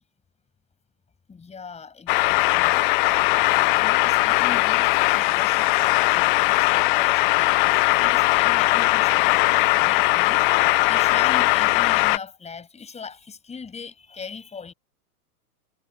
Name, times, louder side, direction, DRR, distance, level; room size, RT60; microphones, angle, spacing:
voice 1, 1.3-2.8 3.3-10.5 10.9-14.7, left 5 dB, 15° left, 7.6 m, -39 dB
sound 1, 2.1-12.2, left 23 dB, 35° left, 0.5 m, -19 dB
hypercardioid pair, 120°, 47 cm